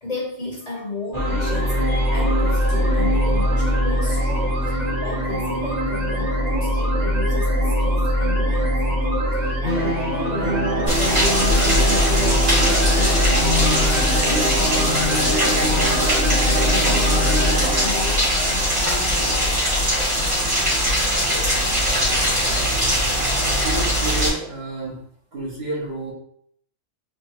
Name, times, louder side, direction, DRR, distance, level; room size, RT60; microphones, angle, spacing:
voice 1, 0.0-19.5, left 2 dB, 35° left, -3 dB, 0.9 m, -33 dB
sound 1, 1.1-18.7, equal, 35° right, 1.2 m, -21 dB
Rain, 10.9-24.3, equal, 75° right, 1.9 m, -21 dB
voice 2, 23.5-25.0 25.3-26.1, right 2 dB, 60° right, -4 dB, 1.5 m, -30 dB
3.7 x 3.4 x 2.9 m, 0.66 s
omnidirectional pair, 1.2 m